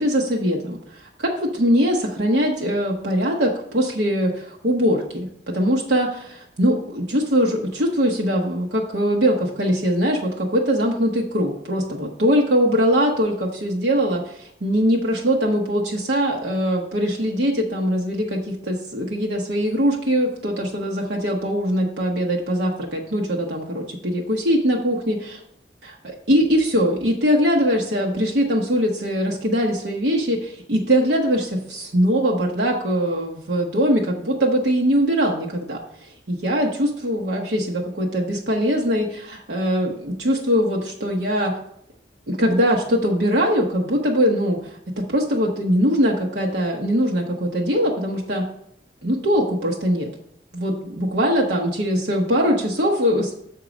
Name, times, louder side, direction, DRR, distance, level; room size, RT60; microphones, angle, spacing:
voice 1, 0.0-25.4 25.8-35.8 36.4-41.5 42.3-48.5 49.0-50.1 50.5-53.3, equal, 75° right, -1 dB, 1.0 m, -21 dB
7.3 x 4.6 x 5.1 m, 0.73 s
head